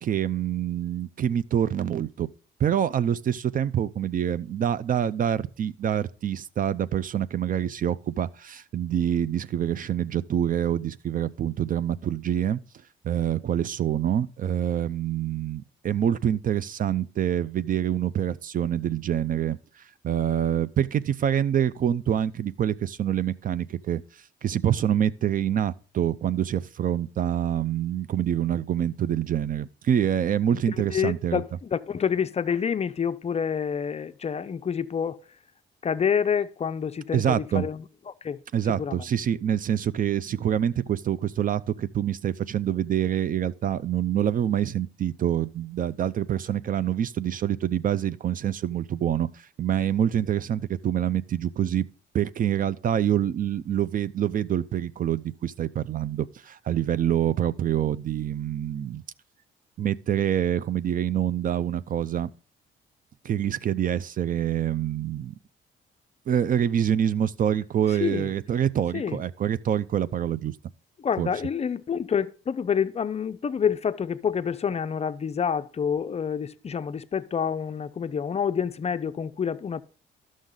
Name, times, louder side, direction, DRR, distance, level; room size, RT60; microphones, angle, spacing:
voice 1, 0.0-2.3 2.6-12.6 13.0-19.6 20.0-24.0 24.4-31.4 37.1-37.7 38.5-51.8 52.1-59.0 59.8-62.3 63.2-65.3 66.3-70.5 71.2-71.3, right 10 dB, 45° right, 0.4 m, -26 dB
voice 2, 30.9-35.2 35.8-38.4 38.8-39.0 68.0-68.3 68.9-69.2 71.0-79.8, left 7 dB, 30° left, 0.4 m, -28 dB
12.0 x 6.3 x 3.8 m
cardioid pair, 90°, 20 cm